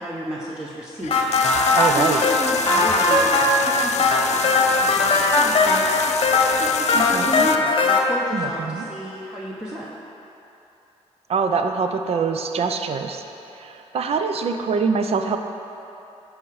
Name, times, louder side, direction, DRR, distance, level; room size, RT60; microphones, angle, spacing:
voice 1, 0.0-5.8 6.3-9.9, equal, 5° right, -6 dB, 0.9 m, -32 dB
sound 1, 1.0-7.6, left 9 dB, 70° left, 0.4 m, -30 dB
sound 2, 1.1-8.0, left 3 dB, 45° left, 1.0 m, -19 dB
voice 2, 1.8-2.2 6.9-7.4 8.3-8.9 11.3-13.2 13.5-15.4, right 5 dB, 55° right, 6 dB, 0.5 m, -24 dB
11.5 x 4.9 x 4.7 m, 2.9 s
cardioid pair, 100°, 12 cm